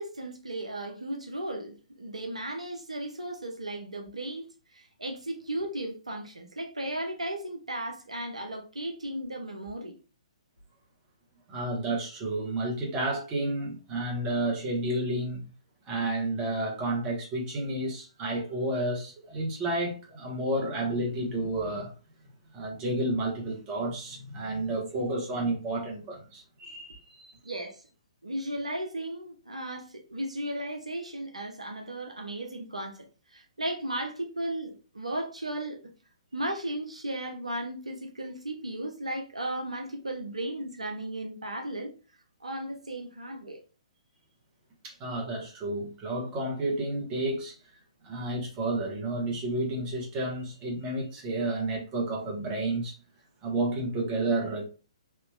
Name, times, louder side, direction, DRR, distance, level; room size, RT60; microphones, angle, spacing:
voice 1, 0.0-9.9 27.4-27.8 28.2-35.8 36.3-41.9 42.4-43.6, right 1 dB, 80° right, 0.7 m, -35 dB
voice 2, 11.5-15.5 15.8-21.9 22.5-27.3 44.8-47.5 48.0-52.9 53.4-54.6, right 2 dB, 20° right, 1.2 m, -31 dB
3.4 x 2.8 x 2.3 m
figure-of-eight pair, 125°, 3 cm